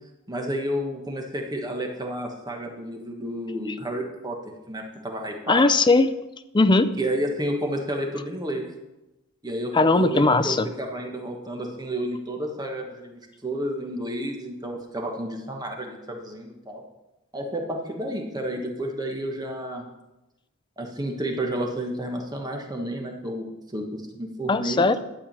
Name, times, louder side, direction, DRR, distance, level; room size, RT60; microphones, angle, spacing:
voice 1, 0.3-4.4 4.7-5.6 7.0-8.7 9.4-16.8 17.3-19.8 20.8-23.4 23.7-23.9 24.1-24.8, right 1 dB, 20° right, 1 dB, 1.3 m, -31 dB
voice 2, 5.5-6.1 6.5-6.9 9.7-10.7 24.5-25.0, left 3 dB, 20° left, 11 dB, 0.5 m, -19 dB
12.0 x 4.9 x 8.6 m, 0.98 s
head